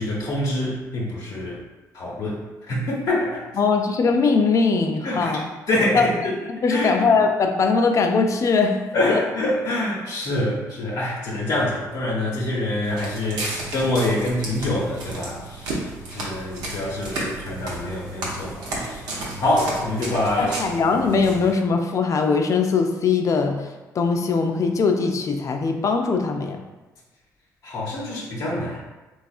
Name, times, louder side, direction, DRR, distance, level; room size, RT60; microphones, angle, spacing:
voice 1, 0.0-1.6 1.9-2.4 2.7-3.4 5.0-5.4 5.7-6.3 6.7-6.9 8.9-19.0 19.4-20.6 27.6-28.8, left 1 dB, 70° left, -5 dB, 0.9 m, -25 dB
voice 2, 3.6-5.4 5.9-6.1 6.5-8.8 9.1-9.2 20.4-26.6, left 4 dB, 50° left, 4 dB, 0.4 m, -21 dB
Walk footsteps, 12.8-21.5, right 2 dB, 85° right, 0.7 m, -33 dB
3.3 x 2.4 x 2.4 m, 1.1 s
supercardioid pair, 65°, 7 cm